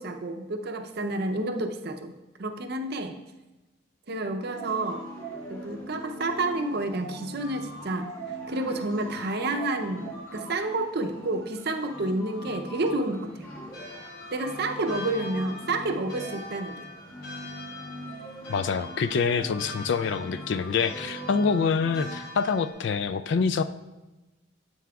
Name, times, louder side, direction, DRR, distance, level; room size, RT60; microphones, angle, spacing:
voice 1, 0.0-3.2 4.1-5.1 5.5-13.5 14.3-16.9, right 2 dB, 50° right, 6 dB, 0.6 m, -30 dB
sound 1, 4.5-22.3, equal, 20° left, 2.6 m, -41 dB
sound 2, 13.7-22.7, left 2 dB, 90° left, 2.7 m, -44 dB
voice 2, 18.5-23.6, left 5 dB, 60° left, 12 dB, 0.3 m, -26 dB
9.4 x 8.4 x 2.3 m, 1.1 s
head